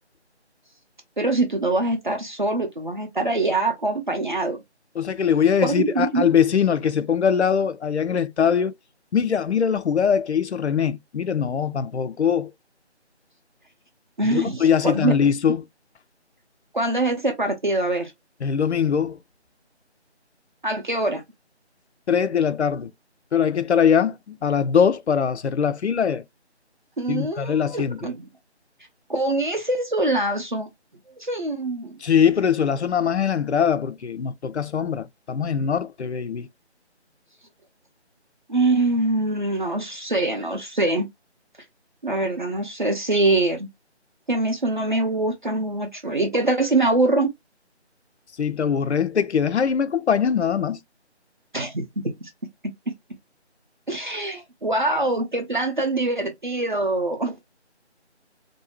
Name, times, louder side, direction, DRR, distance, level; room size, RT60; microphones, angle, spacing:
voice 1, 1.2-4.6 5.6-6.2 14.2-15.1 16.7-18.1 20.6-21.2 27.0-28.2 29.1-30.7 31.2-32.0 38.5-41.1 42.0-43.7 44.3-47.3 51.5-52.3 53.9-57.4, right 2 dB, 45° right, 0.6 m, -24 dB
voice 2, 5.0-8.7 9.1-12.5 14.2-15.6 18.4-19.2 22.1-22.9 23.3-26.2 27.1-28.1 32.0-36.5 48.4-50.8, left 7 dB, 70° left, 0.5 m, -22 dB
3.2 x 2.6 x 2.9 m
figure-of-eight pair, 170°, 34 cm